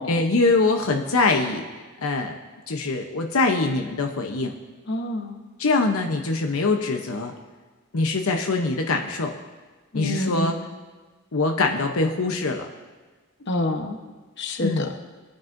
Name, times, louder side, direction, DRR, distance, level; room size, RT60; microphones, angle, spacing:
voice 1, 0.1-1.7 2.0-2.3 2.7-4.6 5.6-7.3 7.9-9.3 9.9-10.5 11.3-12.7 14.6-14.9, left 3 dB, 80° left, 3 dB, 0.8 m, -23 dB
voice 2, 4.9-5.4 9.9-10.5 13.5-14.0 14.4-14.9, left 1 dB, 50° left, 5 dB, 1.0 m, -27 dB
21.0 x 9.4 x 2.6 m, 1.3 s
head